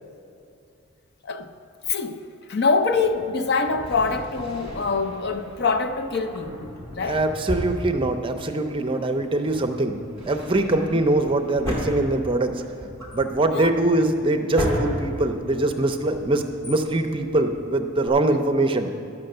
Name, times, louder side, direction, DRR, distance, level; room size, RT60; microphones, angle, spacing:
voice 1, 1.9-7.2 10.7-10.9 13.5-13.7, left 4 dB, 50° left, 0.5 m, -25 dB
Thunder, 2.9-13.8, right 1 dB, 5° right, 1.6 m, -46 dB
Drawer open or close, 3.7-5.2 6.0-8.5 8.8-8.9 9.3-18.1, equal, 15° left, 2.2 m, -34 dB
voice 2, 7.1-12.6 13.1-18.9, right 2 dB, 25° right, 0.5 m, -23 dB
10.5 x 6.0 x 7.7 m
head